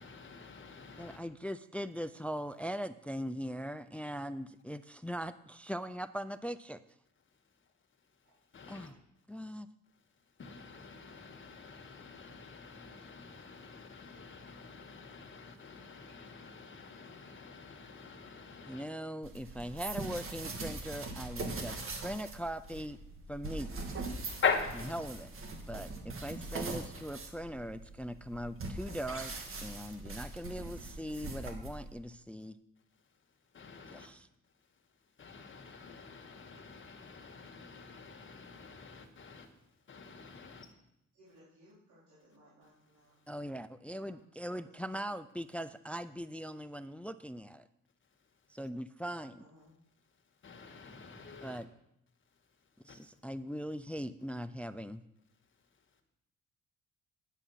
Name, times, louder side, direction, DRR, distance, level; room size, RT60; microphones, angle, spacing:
voice 1, 0.0-1.2 8.5-8.9 10.4-18.8 24.4-24.9 33.5-34.1 35.2-39.5 39.9-40.7 50.4-51.6 52.9-53.0, left 5 dB, 40° left, 4 dB, 1.8 m, -42 dB
voice 2, 1.0-6.8 8.7-9.0 9.3-9.7 18.7-23.0 23.3-23.7 24.9-25.3 25.7-29.3 29.6-32.6 33.9-34.3 43.3-47.7 48.5-49.4 51.4-51.7 52.8-55.0, equal, 5° left, 14 dB, 0.4 m, -40 dB
sound 1, 19.2-32.0, right 3 dB, 45° right, 1.9 m, -42 dB
voice 3, 41.1-43.1 43.9-44.2 44.6-45.1 49.4-49.7, equal, 80° right, -10 dB, 4.0 m, -62 dB
9.0 x 8.3 x 5.7 m, 0.81 s
cardioid pair, 90°, 30 cm